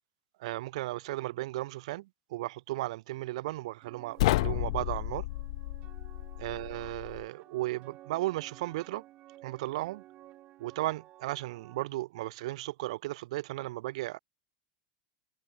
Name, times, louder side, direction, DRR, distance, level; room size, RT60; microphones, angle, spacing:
voice 1, 0.4-5.3 6.4-9.0 9.4-10.0 10.6-14.2, right 18 dB, 75° right, 1.6 m, -35 dB
sound 1, 3.8-11.8, right 15 dB, 40° right, 6.7 m, -54 dB
sound 2, 4.2-7.3, left 19 dB, 70° left, 0.7 m, -32 dB
supercardioid pair, 135°, 3 cm